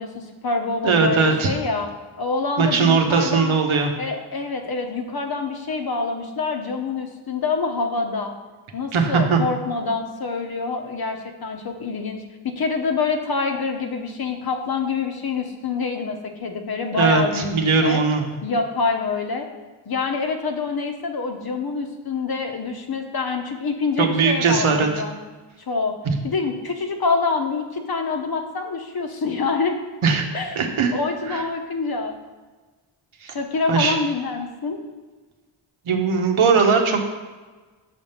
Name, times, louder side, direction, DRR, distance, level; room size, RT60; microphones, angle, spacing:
voice 1, 0.0-1.9 2.2-3.6 4.0-8.3 8.7-18.0 18.4-19.5 19.9-25.2 25.7-26.0 26.2-29.8 30.3-30.6 30.9-32.1 33.3-34.8, left 4 dB, 50° left, 4 dB, 0.9 m, -26 dB
voice 2, 0.8-1.5 2.6-3.9 8.9-9.4 17.0-18.3 24.0-24.9 26.0-26.2 30.0-30.2 30.6-30.9 31.3-31.4 33.2-33.3 33.7-33.9 35.9-37.1, right 5 dB, 75° right, 4 dB, 1.0 m, -19 dB
6.1 x 3.5 x 5.6 m, 1.3 s
cardioid pair, 70°, 49 cm